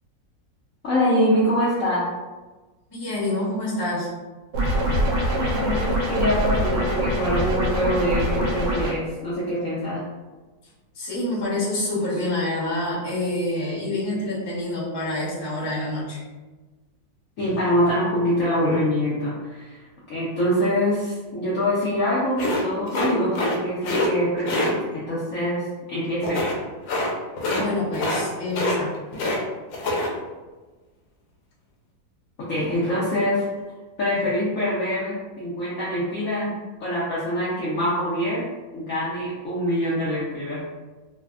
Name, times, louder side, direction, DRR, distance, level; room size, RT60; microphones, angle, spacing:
voice 1, 0.8-2.1 5.4-10.0 17.4-19.8 20.1-26.5 32.5-33.4 34.0-36.5 36.8-38.5 38.7-40.6, equal, 65° left, -9 dB, 0.8 m, -24 dB
voice 2, 2.9-4.1 10.9-16.2 27.5-28.9, left 1 dB, 25° left, -9 dB, 0.6 m, -27 dB
sound 1, 4.5-8.9, equal, 75° right, 1.2 m, -23 dB
sound 2, 22.4-23.6 23.8-24.1 24.5-24.7 26.2-26.6 26.9-27.1 27.4-27.7 27.9-28.2 28.5-29.4 29.7-30.1, left 2 dB, 85° left, 1.3 m, -25 dB
3.2 x 2.1 x 2.3 m, 1.3 s
omnidirectional pair, 2.0 m